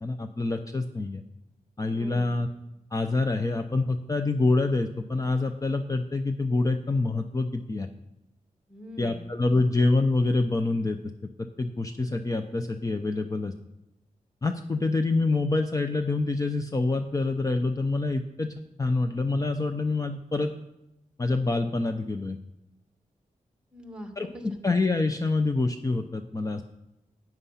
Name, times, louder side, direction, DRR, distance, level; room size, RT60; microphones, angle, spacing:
voice 1, 0.0-1.2 1.8-2.5 2.9-7.9 9.0-11.0 11.6-13.5 14.4-18.5 18.8-20.5 21.2-22.4 24.2-24.3 24.6-26.7, left 3 dB, 25° left, 7 dB, 0.6 m, -26 dB
voice 2, 1.9-2.3 8.7-9.2 9.5-9.7 23.7-24.6, equal, 5° right, 5 dB, 1.5 m, -43 dB
14.0 x 9.1 x 5.6 m, 0.91 s
wide cardioid pair, 130°, 14 cm